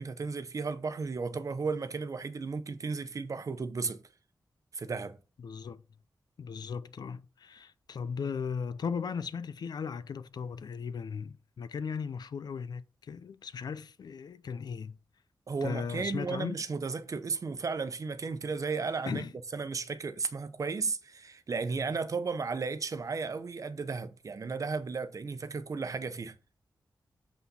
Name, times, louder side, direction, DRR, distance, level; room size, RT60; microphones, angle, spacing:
voice 1, 0.0-4.0 4.7-5.2 15.5-19.3 19.5-26.3, right 4 dB, 50° right, 0.8 m, -34 dB
voice 2, 5.4-5.8 6.4-15.0 15.6-16.6 19.1-19.3, left 6 dB, 70° left, 0.5 m, -37 dB
8.3 x 4.2 x 5.5 m
wide cardioid pair, 135°, 7 cm